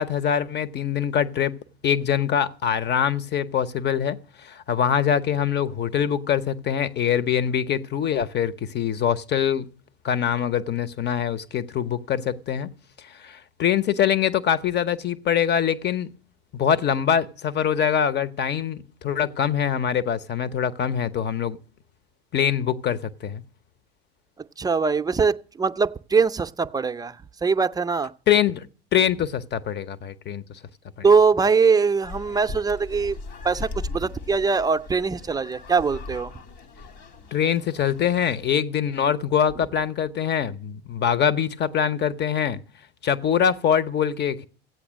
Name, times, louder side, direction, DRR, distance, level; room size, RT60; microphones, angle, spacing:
voice 1, 0.0-1.5 1.8-9.7 10.0-12.7 13.0-16.1 16.5-21.6 22.3-23.4 28.3-28.7 28.9-30.4 31.0-31.1 37.3-42.6 43.0-44.5, left 8 dB, 35° left, 0.9 m, -24 dB
voice 2, 24.6-28.1 31.0-33.2 33.4-36.3, right 5 dB, 10° right, 0.5 m, -22 dB
sound 1, 32.0-38.6, left 3 dB, 55° left, 1.9 m, -39 dB
15.0 x 8.6 x 6.3 m
hypercardioid pair, 85°, 31 cm